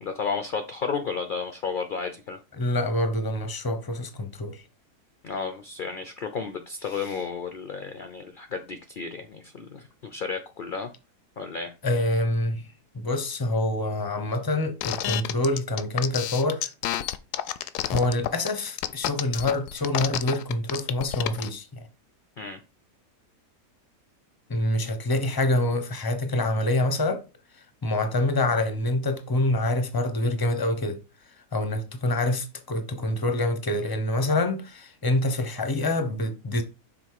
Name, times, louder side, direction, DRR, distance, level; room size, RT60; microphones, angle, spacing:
voice 1, 0.0-2.4 5.2-10.9 11.4-11.7 22.4-22.6, left 5 dB, 60° left, 0.5 m, -32 dB
voice 2, 2.6-4.6 11.8-12.6 12.9-16.7 17.8-21.7 24.5-27.2 27.8-31.0 31.5-36.6, left 1 dB, 20° left, 0.7 m, -26 dB
sound 1, 14.8-21.5, left 12 dB, 90° left, 1.2 m, -29 dB
6.2 x 4.2 x 4.7 m
omnidirectional pair, 1.7 m